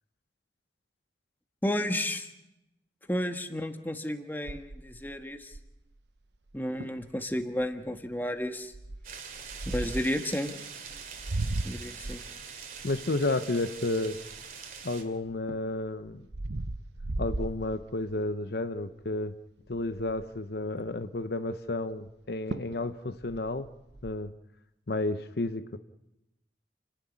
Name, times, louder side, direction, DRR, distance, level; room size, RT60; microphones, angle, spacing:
voice 1, 1.6-2.3 3.1-5.5 6.5-8.7 9.6-10.5 11.6-12.2, left 1 dB, 10° left, 6 dB, 1.5 m, -32 dB
sound 1, 4.5-5.9 6.5-6.6 6.8-7.1 7.6-7.9 8.7-10.2 10.9-14.8 15.3-18.3 18.8-19.0 19.3-19.4 19.7-20.4 22.1-22.2 22.5-22.8 23.2-24.1, right 2 dB, 80° right, 0.9 m, -36 dB
sound 2, 9.0-15.0, right 6 dB, 50° right, 2.9 m, -44 dB
voice 2, 12.8-14.2 14.8-16.2 17.2-19.3 19.7-23.7 24.0-24.3 24.9-25.8, left 2 dB, 60° left, 11 dB, 0.8 m, -31 dB
29.0 x 11.5 x 9.8 m, 0.91 s
head